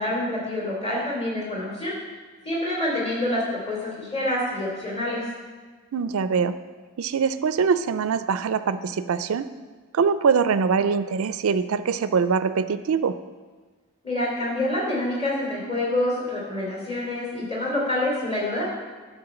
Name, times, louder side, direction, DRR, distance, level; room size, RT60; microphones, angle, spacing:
voice 1, 0.0-1.9 2.4-5.2 14.0-18.7, left 1 dB, 25° left, -4 dB, 3.2 m, -27 dB
voice 2, 5.9-6.5 7.0-9.5 9.9-13.1, right 5 dB, 80° right, 12 dB, 0.4 m, -23 dB
11.0 x 4.3 x 7.0 m, 1.4 s
head